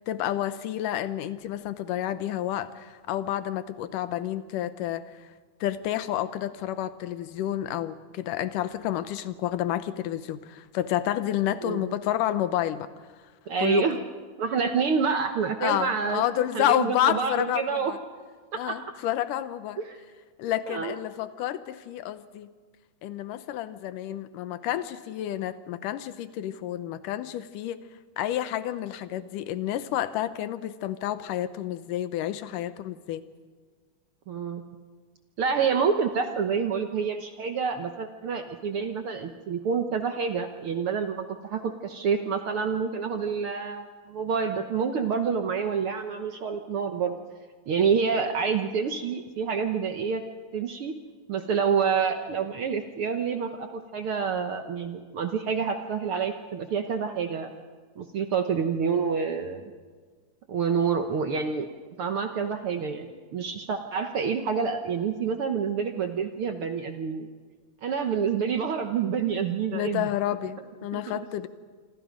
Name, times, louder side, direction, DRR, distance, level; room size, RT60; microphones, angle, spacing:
voice 1, 0.1-5.0 5.6-12.9 13.6-13.9 15.6-18.0 18.5-19.8 20.4-22.5 23.0-27.8 28.2-33.2 69.7-71.5, left 12 dB, 90° left, 13 dB, 2.5 m, -29 dB
voice 2, 11.6-11.9 13.5-14.0 14.4-17.9 18.5-18.8 19.8-20.0 20.7-21.0 34.3-34.6 35.4-47.2 47.7-50.2 50.5-50.9 51.3-57.5 58.0-59.7 60.5-61.7 62.0-67.3 67.8-70.1 70.9-71.0, right 6 dB, 60° right, 6 dB, 1.5 m, -28 dB
27.0 x 26.0 x 5.2 m, 1.5 s
omnidirectional pair, 3.6 m